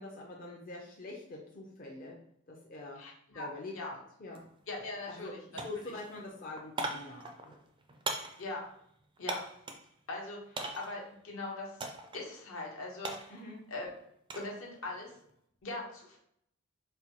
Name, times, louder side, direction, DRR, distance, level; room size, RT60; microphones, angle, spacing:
voice 1, 0.0-2.2 2.5-3.0 3.3-3.7 4.2-4.4 5.1-5.3 5.6-7.6 13.3-13.6, left 2 dB, 40° left, -2 dB, 0.5 m, -44 dB
voice 2, 3.0-3.5 3.7-3.9 4.7-5.6 8.4-8.6 9.2-9.4 10.1-11.8 12.1-13.3 13.7-13.9 14.3-15.1 15.6-16.2, left 2 dB, 70° left, -2 dB, 0.9 m, -41 dB
sound 1, 4.3-4.5 4.8-5.3 5.6-9.9 10.6-11.1 11.8-12.2 12.5-14.5 14.9-15.3, right 2 dB, 25° right, 0.3 m, -40 dB
4.2 x 2.2 x 2.8 m, 0.70 s
head